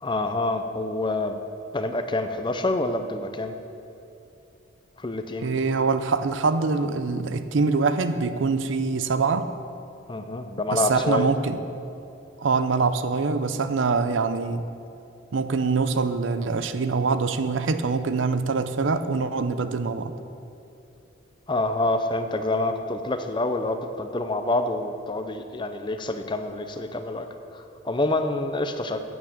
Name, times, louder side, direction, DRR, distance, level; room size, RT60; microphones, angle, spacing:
voice 1, 0.0-1.4 1.7-3.5 5.0-5.5 10.1-11.3 21.5-27.3 27.5-29.0, left 2 dB, 25° left, 8 dB, 0.6 m, -27 dB
voice 2, 5.4-9.5 10.7-11.6 12.4-14.6 15.3-20.1, right 4 dB, 75° right, 11 dB, 0.6 m, -24 dB
9.3 x 8.3 x 7.3 m, 2.8 s
head